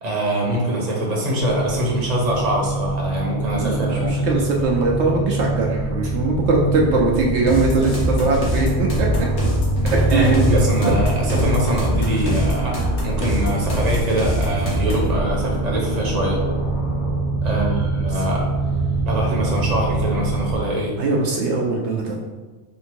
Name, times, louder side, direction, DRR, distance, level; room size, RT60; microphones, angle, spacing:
voice 1, 0.0-4.3 10.0-12.7 13.0-16.4 17.4-18.5 19.1-20.9, equal, 40° right, -2 dB, 0.9 m, -23 dB
sound 1, 1.4-20.5, right 2 dB, 50° left, 1.4 m, -24 dB
voice 2, 3.6-9.3 9.8-10.6 10.9-11.0 17.4-18.2 21.0-22.2, right 3 dB, 75° right, -1 dB, 0.9 m, -21 dB
sound 2, 7.5-15.1, equal, 80° left, 1.4 m, -24 dB
3.6 x 2.7 x 4.4 m, 1.3 s
omnidirectional pair, 1.2 m